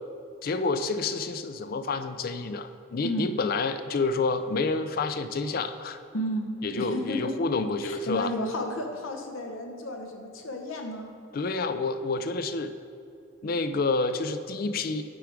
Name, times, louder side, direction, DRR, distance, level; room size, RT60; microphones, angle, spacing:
voice 1, 0.4-6.0 6.6-8.3 11.3-12.7 13.4-15.0, left 3 dB, 45° left, 10 dB, 0.3 m, -29 dB
voice 2, 6.1-6.5 6.8-7.3 7.8-11.1, left 1 dB, 80° left, 3 dB, 0.9 m, -32 dB
8.3 x 5.0 x 4.7 m, 2.6 s
head